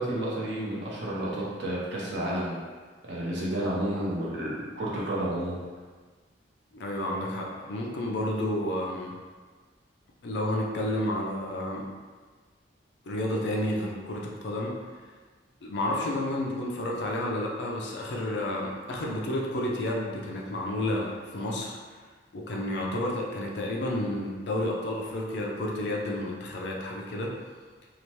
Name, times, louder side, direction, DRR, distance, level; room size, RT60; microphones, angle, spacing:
voice 1, 0.0-2.6 3.0-5.6, right 1 dB, 65° right, -5 dB, 0.8 m, -31 dB
voice 2, 6.7-9.1 10.2-11.9 13.0-14.8 15.6-21.8 22.3-27.4, left 1 dB, 65° left, -2 dB, 0.5 m, -31 dB
2.8 x 2.1 x 3.0 m, 1.4 s
head